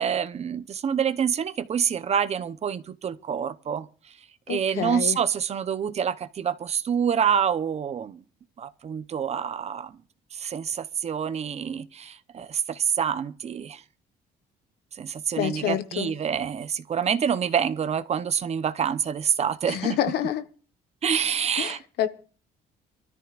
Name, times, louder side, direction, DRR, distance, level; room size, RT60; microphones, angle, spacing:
voice 1, 0.0-3.9 4.5-8.2 8.6-9.9 10.3-13.8 14.9-20.0 21.0-21.8, right 7 dB, 40° right, 0.7 m, -27 dB
voice 2, 4.5-5.2 15.4-16.1 19.7-20.4 21.6-22.1, left 11 dB, 75° left, 1.2 m, -28 dB
26.5 x 13.5 x 2.5 m
cardioid pair, 110°, 17 cm